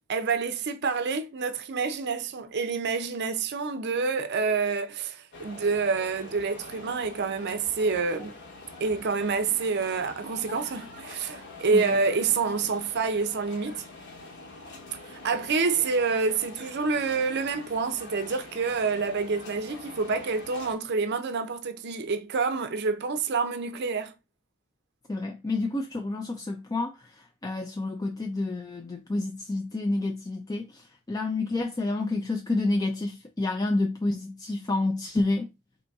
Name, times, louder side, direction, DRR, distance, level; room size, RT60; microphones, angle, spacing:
voice 1, 0.1-8.3 8.8-13.8 15.1-24.1, right 4 dB, 50° right, 0.5 m, -27 dB
sound 1, 5.3-20.7, left 3 dB, 50° left, 1.1 m, -45 dB
voice 2, 25.1-35.5, left 2 dB, 15° left, 0.3 m, -29 dB
4.0 x 2.8 x 3.5 m
head